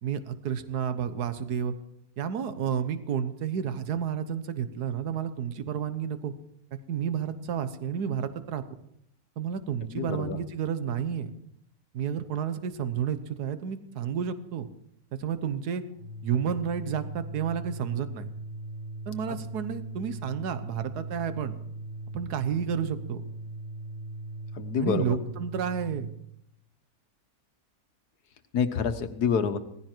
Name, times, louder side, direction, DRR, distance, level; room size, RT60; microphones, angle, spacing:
voice 1, 0.0-1.7 2.2-6.3 6.9-8.6 9.4-11.3 11.9-14.7 15.2-15.8 16.2-18.3 19.1-21.5 22.1-23.2 24.8-26.1, right 8 dB, 80° right, 11 dB, 1.6 m, -31 dB
voice 2, 9.9-10.4 24.6-25.2 28.5-29.6, left 6 dB, 80° left, 10 dB, 1.6 m, -27 dB
Organ, 15.9-26.2, right 2 dB, 60° right, 2.7 m, -39 dB
18.0 x 15.5 x 4.5 m, 0.73 s
omnidirectional pair, 1.7 m